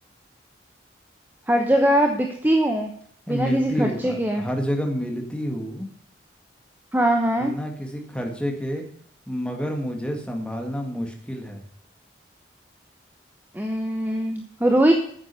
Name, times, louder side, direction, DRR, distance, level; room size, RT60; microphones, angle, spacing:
voice 1, 1.5-2.9 3.3-4.4 6.9-7.5 13.5-14.9, right 1 dB, 10° right, 3 dB, 1.0 m, -21 dB
voice 2, 3.3-5.9 7.4-8.9 9.3-11.6, equal, 5° left, 2 dB, 2.0 m, -28 dB
9.5 x 8.0 x 6.9 m, 0.62 s
head